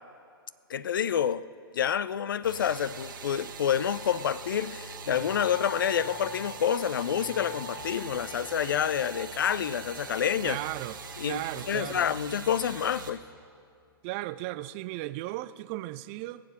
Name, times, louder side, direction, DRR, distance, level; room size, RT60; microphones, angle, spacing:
voice 1, 0.7-1.4 1.7-10.6 11.2-13.2, left 8 dB, 60° left, 0.4 m, -28 dB
sound 1, 2.4-13.1, right 5 dB, 55° right, 1.3 m, -42 dB
sound 2, 2.7-12.9, left 2 dB, 30° left, 4.4 m, -48 dB
voice 2, 10.4-11.0 11.2-12.1 14.0-16.4, right 17 dB, 30° right, 0.3 m, -35 dB
21.5 x 7.5 x 6.1 m
figure-of-eight pair, 110°, 12 cm